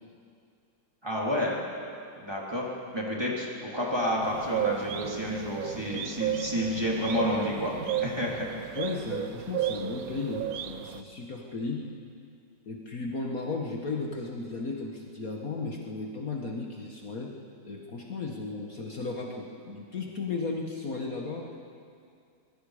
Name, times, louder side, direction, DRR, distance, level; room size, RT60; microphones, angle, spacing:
voice 1, 1.0-1.6 2.2-2.7 2.9-7.7 8.0-8.6, left 1 dB, 15° right, -4 dB, 3.2 m, -30 dB
sound 1, 4.2-11.0, right 10 dB, 65° right, 1.0 m, -33 dB
voice 2, 8.8-11.9 12.7-17.3 17.6-21.6, left 3 dB, 50° left, -1 dB, 1.8 m, -35 dB
25.0 x 21.0 x 5.0 m, 2.4 s
omnidirectional pair, 2.1 m